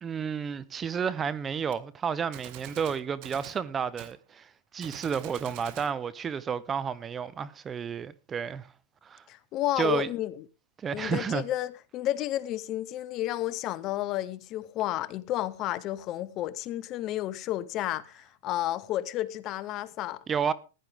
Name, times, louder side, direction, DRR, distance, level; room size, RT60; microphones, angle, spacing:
voice 1, 0.0-8.7 9.0-9.2 9.8-10.1 10.8-11.4 20.3-20.5, right 7 dB, 20° right, 0.6 m, -31 dB
Gunshot gunfire, 1.7-1.8 2.3-3.6 4.0-4.2 4.8-5.9, right 11 dB, 50° right, 1.6 m, -45 dB
voice 2, 9.3-10.3 10.9-20.2, left 14 dB, 40° left, 0.8 m, -31 dB
15.5 x 10.5 x 3.5 m
hypercardioid pair, 125°, 0 cm